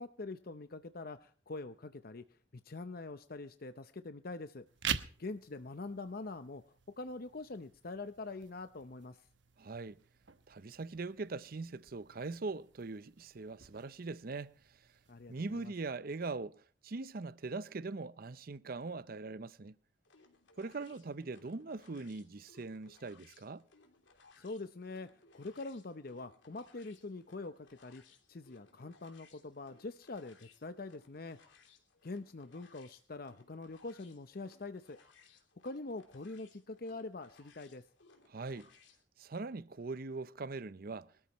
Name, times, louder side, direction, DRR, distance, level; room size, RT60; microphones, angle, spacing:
voice 1, 0.0-2.2 2.6-6.6 7.0-9.3 15.1-15.7 24.4-25.1 25.3-28.0 28.3-31.4 32.0-35.0 35.3-37.8, left 3 dB, 50° left, 0.7 m, -44 dB
sound 1, 4.7-15.7, right 8 dB, 70° right, 1.1 m, -47 dB
voice 2, 9.6-10.0 10.5-14.5 15.3-19.7 20.6-23.6 38.3-38.7 39.2-41.1, right 3 dB, 50° right, 0.6 m, -41 dB
sound 2, 20.0-39.0, left 4 dB, 70° left, 3.1 m, -64 dB
23.5 x 13.5 x 3.1 m
head